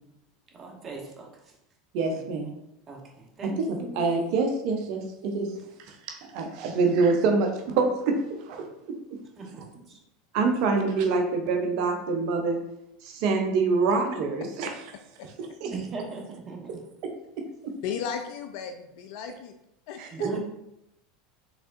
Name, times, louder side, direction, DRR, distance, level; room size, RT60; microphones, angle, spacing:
voice 1, 0.5-1.3 2.1-2.3 2.9-4.1 9.4-10.0 15.7-16.8 20.1-20.4, right 4 dB, 35° right, 0 dB, 1.2 m, -39 dB
voice 2, 1.9-2.5 3.4-5.5 6.1-8.2 8.5-9.0 10.3-12.6 13.0-14.7 15.6-15.7 17.6-17.7 20.0-20.3, right 4 dB, 60° right, 4 dB, 0.7 m, -26 dB
voice 3, 17.8-19.5 19.9-20.2, left 7 dB, 60° left, 6 dB, 0.4 m, -35 dB
5.0 x 3.5 x 2.6 m, 0.84 s
hypercardioid pair, 85°, 0 cm